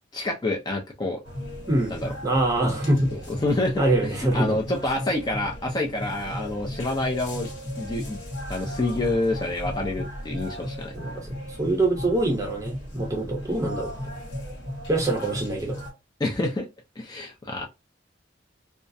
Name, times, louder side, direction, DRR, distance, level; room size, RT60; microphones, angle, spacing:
voice 1, 0.1-1.2 1.9-2.1 3.1-7.5 7.8-8.2 8.5-10.9 16.2-16.7 17.0-17.7, left 2 dB, 25° left, 0.4 m, -28 dB
sound 1, 1.2-15.9, equal, 70° left, 1.2 m, -35 dB
voice 2, 2.2-3.1 3.8-4.6 10.9-11.1 11.6-13.9 14.9-15.8, right 2 dB, 20° right, 0.7 m, -24 dB
2.3 x 2.0 x 2.6 m
head